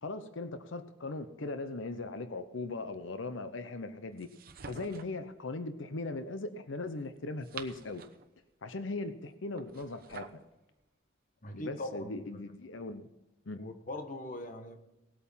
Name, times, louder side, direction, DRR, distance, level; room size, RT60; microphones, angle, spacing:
voice 1, 0.0-4.3 4.7-8.0 8.6-10.3 11.5-13.1 13.5-13.6, left 2 dB, 90° left, 10 dB, 0.8 m, -39 dB
sound 1, 4.2-5.2 7.2-8.3 9.6-10.5, right 6 dB, 50° right, 1.0 m, -47 dB
voice 2, 11.4-12.2 13.6-14.8, left 1 dB, 45° left, 6 dB, 1.4 m, -41 dB
18.0 x 8.5 x 5.6 m, 0.95 s
head